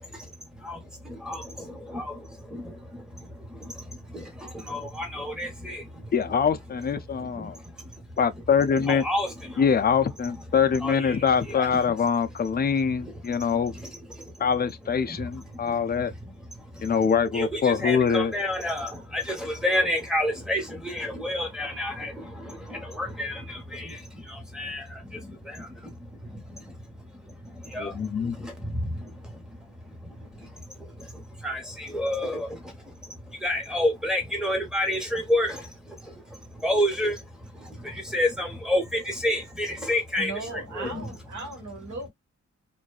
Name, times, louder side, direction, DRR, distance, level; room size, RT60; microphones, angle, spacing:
voice 1, 0.0-6.1 7.1-8.2 8.7-9.6 10.3-10.4 10.8-11.8 13.0-14.5 14.8-16.9 17.3-41.2 41.9-42.0, left 1 dB, ahead, 1.0 m, -31 dB
voice 2, 6.1-7.6 8.2-9.0 9.6-13.7 14.4-16.1 16.8-18.3 27.8-28.5 40.8-41.0, left 6 dB, 35° left, 0.4 m, -24 dB
voice 3, 40.2-42.1, right 3 dB, 70° right, 1.4 m, -37 dB
2.5 x 2.3 x 2.3 m
wide cardioid pair, 105°, 29 cm